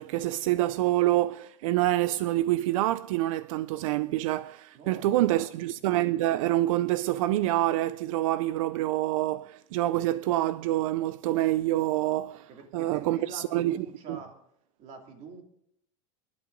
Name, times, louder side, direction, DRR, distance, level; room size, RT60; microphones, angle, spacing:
voice 1, 0.0-14.2, right 15 dB, 80° right, 0.4 m, -27 dB
voice 2, 4.7-5.5 12.5-14.3 14.8-15.4, right 4 dB, 45° right, 2.6 m, -44 dB
28.5 x 11.5 x 2.6 m
supercardioid pair, 145°, 17 cm